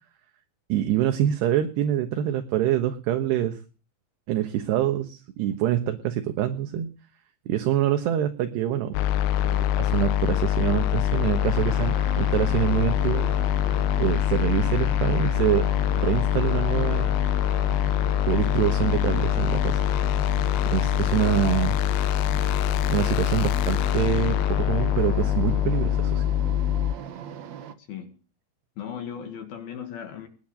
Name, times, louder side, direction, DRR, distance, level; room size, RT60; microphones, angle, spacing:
voice 1, 0.7-3.6 4.3-6.9 7.5-9.0 9.4-13.3 14.0-15.7 16.0-17.1 18.3-19.8 20.7-21.8 22.9-26.2, right 11 dB, 70° right, 3.2 m, -25 dB
sound 1, 8.9-27.0, left 12 dB, 85° left, 3.3 m, -24 dB
sound 2, 11.4-27.7, right 8 dB, 90° right, 1.5 m, -38 dB
voice 2, 27.8-28.2 28.8-30.3, left 8 dB, 60° left, 3.5 m, -37 dB
20.5 x 7.0 x 8.9 m
omnidirectional pair, 5.3 m